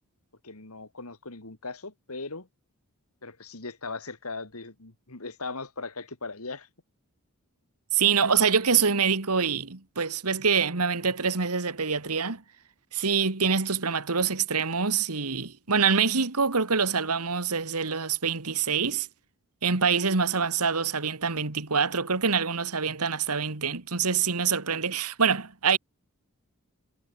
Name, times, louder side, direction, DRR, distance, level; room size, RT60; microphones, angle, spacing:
voice 1, 0.4-2.5 3.2-6.7, left 3 dB, 75° left, 2.9 m, -38 dB
voice 2, 7.9-12.4 12.9-19.1 19.6-25.8, right 6 dB, 90° right, 2.0 m, -25 dB
head